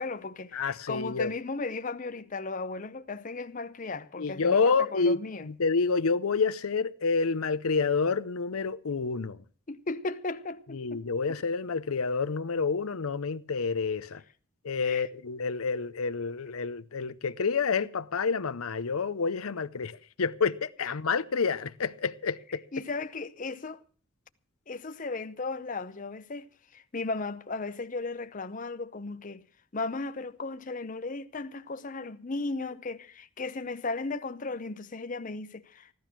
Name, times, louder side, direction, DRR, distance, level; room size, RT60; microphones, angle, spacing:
voice 1, 0.0-5.5 9.7-11.0 14.8-15.1 20.8-20.9 22.7-23.8 24.7-29.4 29.7-35.9, left 3 dB, 35° left, 0.6 m, -36 dB
voice 2, 0.5-1.3 4.2-9.4 10.7-14.2 14.6-22.6, left 5 dB, 75° left, 0.6 m, -28 dB
15.5 x 12.0 x 6.0 m
head